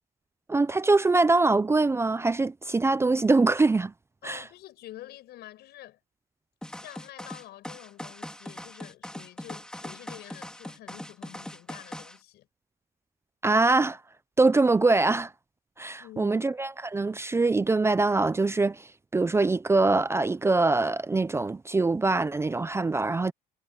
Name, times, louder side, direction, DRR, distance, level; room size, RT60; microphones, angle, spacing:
voice 1, 0.5-3.9 4.2-4.4 13.4-14.0 14.4-15.3 15.8-23.3, right 3 dB, 15° right, 0.5 m, -23 dB
voice 2, 4.2-6.0 6.7-12.5 16.0-16.4, left 14 dB, 75° left, 7.9 m, -47 dB
sound 1, 6.6-12.2, left 1 dB, 5° left, 3.0 m, -41 dB
cardioid pair, 110°, 17 cm